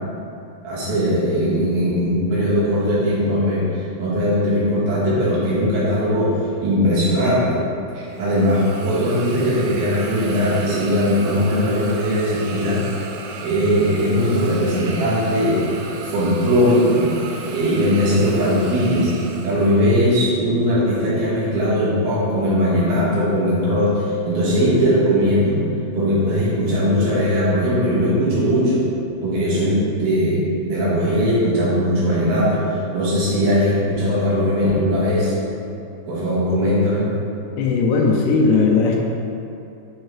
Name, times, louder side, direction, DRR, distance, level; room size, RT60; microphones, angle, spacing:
voice 1, 0.6-3.6 4.0-7.6 7.9-12.8 13.4-15.6 16.0-17.1 17.5-19.1 19.4-25.6 25.9-28.8 29.2-35.3 36.1-37.1, equal, 65° right, -9 dB, 2.7 m, -19 dB
Hiss, 8.0-20.2, right 4 dB, 80° right, 2.9 m, -34 dB
voice 2, 37.6-39.0, left 4 dB, 80° left, -1 dB, 2.9 m, -17 dB
7.7 x 4.5 x 3.4 m, 2.7 s
omnidirectional pair, 5.8 m